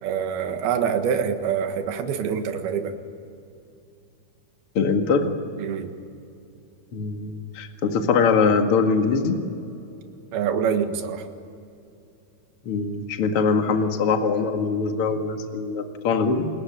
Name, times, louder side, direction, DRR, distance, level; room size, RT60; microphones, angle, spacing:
voice 1, 0.0-3.0 5.6-5.9 10.3-11.3, right 7 dB, 75° right, 6 dB, 3.5 m, -25 dB
voice 2, 4.7-5.3 6.9-9.4 12.6-16.5, left 5 dB, 45° left, 5 dB, 2.3 m, -22 dB
29.5 x 21.5 x 9.0 m, 2.6 s
omnidirectional pair, 4.5 m